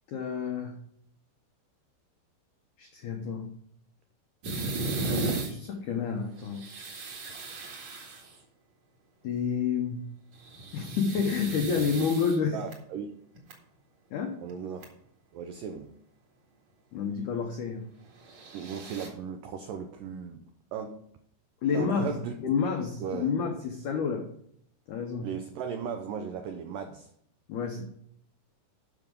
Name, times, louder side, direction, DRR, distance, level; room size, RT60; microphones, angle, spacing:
voice 1, 0.1-0.8 2.8-3.5 5.0-6.6 9.2-10.1 10.7-12.6 14.1-14.4 16.9-17.9 21.6-22.1 22.4-24.3 24.9-25.3 27.5-27.8, left 6 dB, 80° left, 3 dB, 1.7 m, -29 dB
sound 1, 4.4-5.5 6.4-8.4 10.4-12.7 13.3-13.5 14.5-14.6 14.8-14.9 18.2-19.1, right 2 dB, 50° right, 2.7 m, -35 dB
voice 2, 12.5-13.2 14.4-14.9 15.3-15.9 18.5-21.0 21.7-22.3 23.0-23.3 25.2-27.1, right 7 dB, 85° right, 6 dB, 1.9 m, -37 dB
12.0 x 6.0 x 5.3 m, 0.69 s
omnidirectional pair, 4.9 m